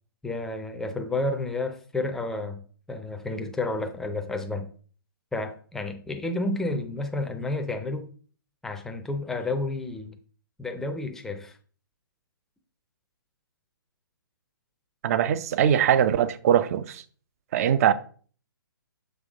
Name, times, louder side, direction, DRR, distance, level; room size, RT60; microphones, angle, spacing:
voice 1, 0.2-2.6 2.9-4.7 5.3-8.1 8.6-10.2 10.6-11.6, left 2 dB, 5° left, 0.6 m, -31 dB
voice 2, 15.0-17.0 17.5-17.9, right 9 dB, 40° right, 0.5 m, -21 dB
6.4 x 5.4 x 3.5 m
hypercardioid pair, 140°, 12 cm